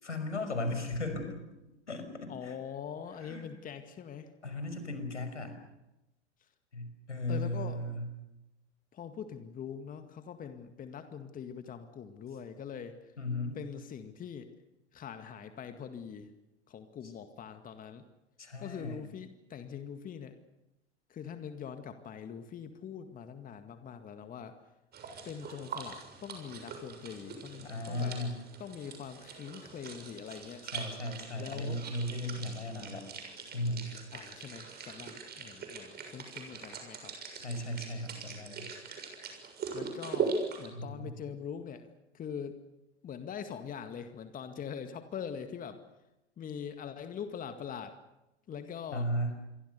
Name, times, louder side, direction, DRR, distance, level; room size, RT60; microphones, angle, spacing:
voice 1, 0.0-1.4 1.9-2.6 3.2-3.5 4.4-5.6 6.7-8.1 13.2-13.6 17.0-17.1 18.4-19.0 27.6-28.4 30.7-33.1 33.5-33.9 37.4-38.7 40.7-41.3 48.9-49.4, left 1 dB, 85° left, 8 dB, 5.7 m, -36 dB
voice 2, 2.3-4.3 7.3-7.8 8.9-12.9 13.6-14.5 14.9-16.3 16.7-18.0 18.6-20.4 21.1-24.5 25.2-28.1 28.6-30.6 31.4-31.8 34.1-37.1 39.7-42.6 43.0-45.8 46.4-48.0 48.5-49.1, left 7 dB, 25° left, 8 dB, 2.0 m, -43 dB
sound 1, 24.9-40.7, right 5 dB, 30° right, 6.8 m, -41 dB
28.5 x 23.5 x 6.9 m, 0.94 s
figure-of-eight pair, 95°, 34 cm